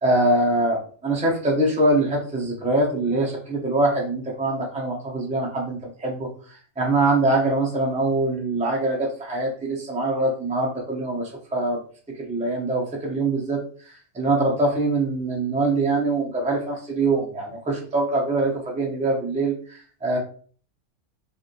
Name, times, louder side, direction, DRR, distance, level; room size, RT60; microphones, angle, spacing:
voice 1, 0.0-6.3 6.8-11.8 12.3-13.6 14.1-20.2, right 2 dB, 5° right, -2 dB, 0.9 m, -23 dB
4.9 x 2.6 x 3.2 m, 0.43 s
omnidirectional pair, 1.4 m